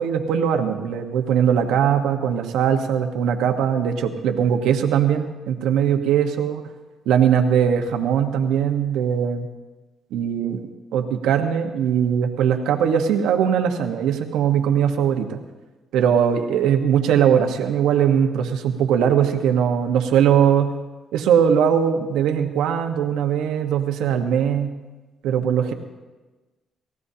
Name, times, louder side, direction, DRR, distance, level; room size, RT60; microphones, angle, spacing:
voice 1, 0.0-6.6 7.1-9.5 10.1-15.4 15.9-20.7 21.1-24.7 25.2-25.7, right 8 dB, 90° right, 5 dB, 1.3 m, -20 dB
28.5 x 15.0 x 2.9 m, 1.2 s
cardioid pair, 90°, 0 cm